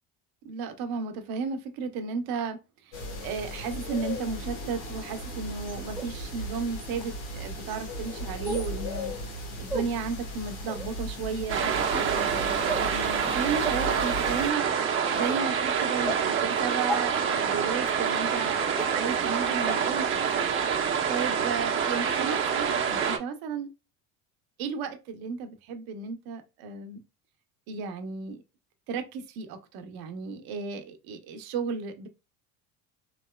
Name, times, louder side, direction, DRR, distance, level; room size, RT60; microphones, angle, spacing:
voice 1, 0.4-3.0 3.2-9.1 9.6-14.7 15.1-18.6 18.9-20.3 21.1-23.7 24.6-27.0 27.7-28.4 28.9-32.1, right 5 dB, 60° right, 0.9 m, -34 dB
sound 1, 2.9-14.5, equal, 70° left, 1.4 m, -37 dB
sound 2, 5.9-6.1 6.9-7.0 8.4-8.7 9.7-9.9 10.6-10.9 11.8-12.1 12.7-12.9 13.6-13.7 14.3-14.6 15.3-15.4 16.0-16.2 16.9-17.0 17.8-17.9 18.7-18.9 19.7-19.8 20.3-20.4, right 1 dB, 5° right, 0.3 m, -33 dB
sound 3, 11.5-23.2, right 7 dB, 30° right, 0.8 m, -27 dB
3.3 x 2.9 x 2.2 m
supercardioid pair, 100°, 41 cm